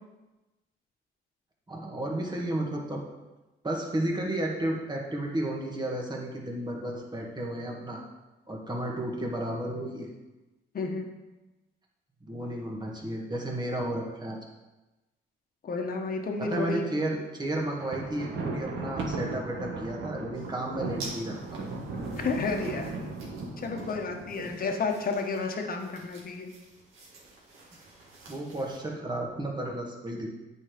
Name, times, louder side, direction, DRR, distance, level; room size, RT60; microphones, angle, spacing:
voice 1, 1.7-3.0 3.6-8.0 8.5-10.1 12.3-14.4 16.4-21.6 24.4-24.5 28.3-30.3, right 1 dB, 20° right, 0 dB, 1.8 m, -33 dB
voice 2, 10.7-11.1 15.6-16.9 22.2-22.9 23.6-26.5, left 4 dB, 45° left, 3 dB, 1.2 m, -31 dB
Thunder, 17.6-24.9, right 3 dB, 70° right, 1.4 m, -36 dB
sound 1, 20.3-28.8, right 2 dB, 90° right, 1.9 m, -49 dB
8.4 x 4.8 x 5.1 m, 1.1 s
cardioid pair, 90°, 20 cm